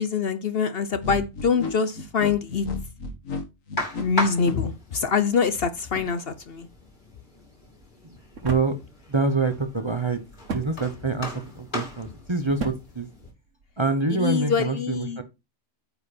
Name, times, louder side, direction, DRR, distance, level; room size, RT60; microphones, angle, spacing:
voice 1, 0.0-2.7 4.0-6.7 14.1-15.2, left 6 dB, 55° left, 0.9 m, -25 dB
sound 1, 1.0-4.6, left 4 dB, 90° left, 2.0 m, -32 dB
sound 2, 3.8-13.3, left 1 dB, 40° left, 2.9 m, -37 dB
sound 3, 5.3-13.9, right 3 dB, 70° right, 1.7 m, -40 dB
voice 2, 8.4-8.8 9.1-10.2 10.5-11.3 11.5-13.1 13.8-15.2, right 3 dB, 25° right, 0.8 m, -25 dB
9.2 x 5.1 x 4.2 m
omnidirectional pair, 1.3 m